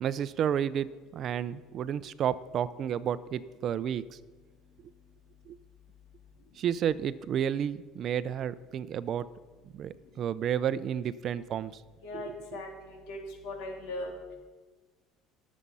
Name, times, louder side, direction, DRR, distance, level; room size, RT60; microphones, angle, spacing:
voice 1, 0.0-0.9 1.1-4.0 5.5-5.6 6.6-9.3 9.7-11.7 12.1-12.2, right 9 dB, 50° right, 16 dB, 0.5 m, -31 dB
voice 2, 12.0-13.2 13.4-14.1, left 2 dB, 75° left, 1 dB, 3.5 m, -39 dB
19.0 x 7.4 x 5.5 m, 1.3 s
supercardioid pair, 110°, 0 cm